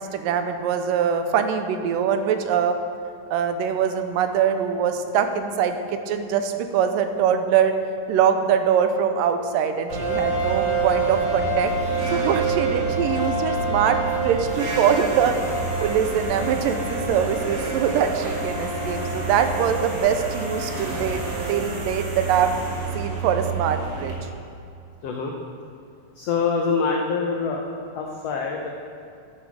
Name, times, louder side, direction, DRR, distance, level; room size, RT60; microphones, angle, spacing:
voice 1, 0.0-2.8 3.3-7.7 8.1-11.7 12.1-14.0 14.2-15.4 15.8-21.2 21.5-22.5 22.9-24.2, right 8 dB, 85° right, 8 dB, 2.4 m, -23 dB
sound 1, 9.9-24.1, right 3 dB, 40° right, 2.9 m, -31 dB
sound 2, 9.9-21.5, right 3 dB, 60° right, 3.4 m, -28 dB
voice 2, 25.0-25.3 26.2-27.6 27.9-28.7, left 5 dB, 70° left, 0 dB, 1.5 m, -25 dB
11.0 x 9.6 x 6.4 m, 2.4 s
omnidirectional pair, 3.9 m